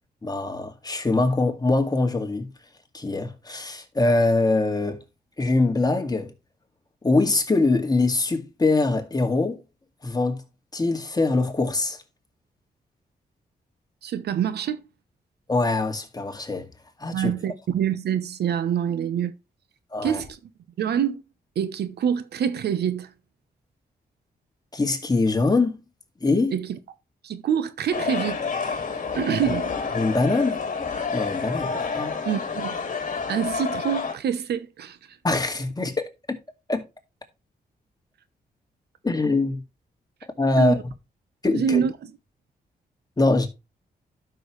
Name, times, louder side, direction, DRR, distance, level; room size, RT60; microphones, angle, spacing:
voice 1, 0.2-2.5 2.9-5.0 5.4-6.3 7.0-9.6 10.0-10.4 10.7-12.0 15.5-16.7 17.0-17.3 19.9-20.2 24.7-25.8 26.2-26.5 29.5-29.6 29.9-30.6 31.1-32.2 35.2-36.0 36.3-36.4 36.7-36.8 39.0-39.6 40.4-40.7 41.4-41.8 43.2-43.5, left 3 dB, 25° left, 2.1 m, -23 dB
voice 2, 14.0-14.8 17.1-19.3 20.0-20.4 20.8-21.2 21.6-23.1 26.5-26.8 27.2-28.5 29.1-29.8 32.2-32.8 33.3-35.0 40.6-40.8 41.5-41.9, right 8 dB, 85° right, 1.0 m, -26 dB
sound 1, 27.9-34.1, left 5 dB, 50° left, 2.1 m, -29 dB
12.0 x 6.3 x 3.2 m
cardioid pair, 75°, 17 cm